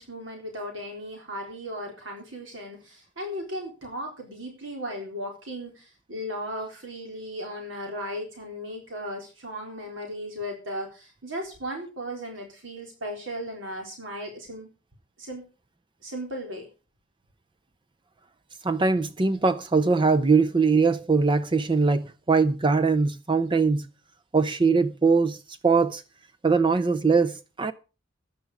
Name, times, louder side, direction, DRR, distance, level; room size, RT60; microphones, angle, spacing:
voice 1, 0.0-14.7 15.2-15.4 16.0-16.7, equal, 80° right, 3.9 m, -36 dB
voice 2, 18.6-23.9 24.3-26.0 26.4-27.7, right 4 dB, 25° right, 0.6 m, -22 dB
15.5 x 10.5 x 4.9 m
head